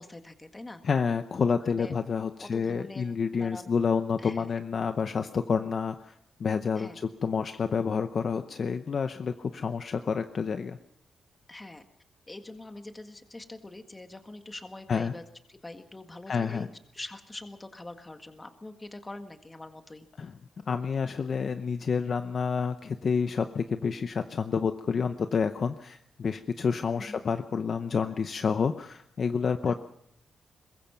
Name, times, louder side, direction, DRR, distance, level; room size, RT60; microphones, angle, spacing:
voice 1, 0.0-0.8 1.4-2.0 2.4-3.8 4.2-4.6 6.8-7.0 11.5-11.8 12.3-15.2 15.5-20.1 26.9-27.2 29.7-29.8, left 2 dB, 15° left, 6 dB, 1.7 m, -44 dB
voice 2, 0.8-6.1 6.4-6.9 7.2-10.8 14.9-15.1 16.3-16.7 20.2-20.3 20.7-29.8, left 6 dB, 40° left, 8 dB, 0.8 m, -29 dB
22.5 x 21.0 x 5.9 m, 0.73 s
wide cardioid pair, 170°, 0 cm